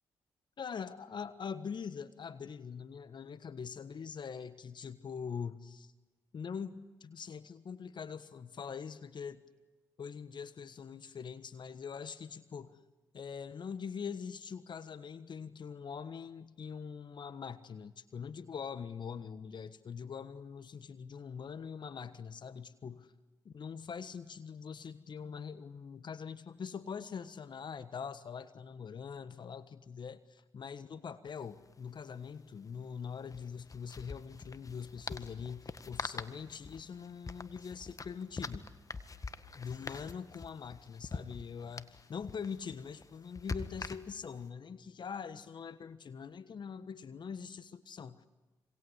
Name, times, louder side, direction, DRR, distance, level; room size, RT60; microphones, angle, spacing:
voice 1, 0.6-5.9 6.3-9.4 10.0-12.8 13.1-23.1 23.4-38.6 39.6-48.3, left 6 dB, 55° left, 13 dB, 1.4 m, -43 dB
sound 1, 31.3-31.4 31.6-31.7 33.2-44.4, left 4 dB, 40° left, 1.7 m, -44 dB
26.5 x 26.5 x 8.2 m, 1.1 s
hypercardioid pair, 45°, 9 cm